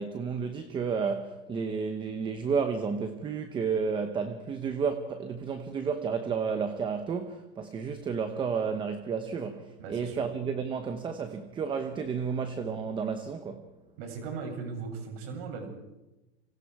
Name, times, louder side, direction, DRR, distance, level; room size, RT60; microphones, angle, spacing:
voice 1, 0.0-13.7, right 5 dB, 15° right, 0.9 m, -31 dB
voice 2, 9.8-10.2 14.0-15.7, right 5 dB, 55° right, 7.8 m, -38 dB
30.0 x 26.0 x 4.8 m
supercardioid pair, 170°, 35 cm